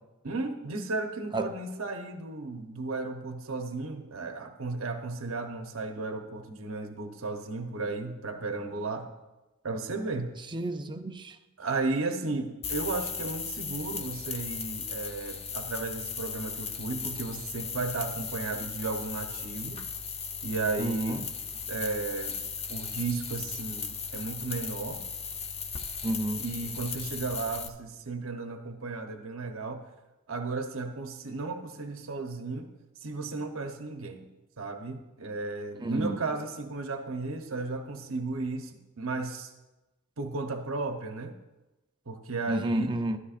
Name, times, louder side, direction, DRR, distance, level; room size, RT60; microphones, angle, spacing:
voice 1, 0.2-9.1 9.6-10.4 11.6-19.8 20.4-21.2 21.7-22.4 22.7-25.0 26.4-29.9 30.3-32.7 33.0-34.3 34.6-39.5 40.2-41.3 42.1-42.9, right 3 dB, 75° right, 0.9 m, -34 dB
voice 2, 10.5-11.4 20.8-21.2 26.0-26.4 35.8-36.2 42.5-43.2, right 1 dB, 20° right, 0.6 m, -30 dB
sound 1, 12.6-27.7, left 5 dB, 30° left, 0.6 m, -37 dB
13.0 x 12.5 x 2.5 m
head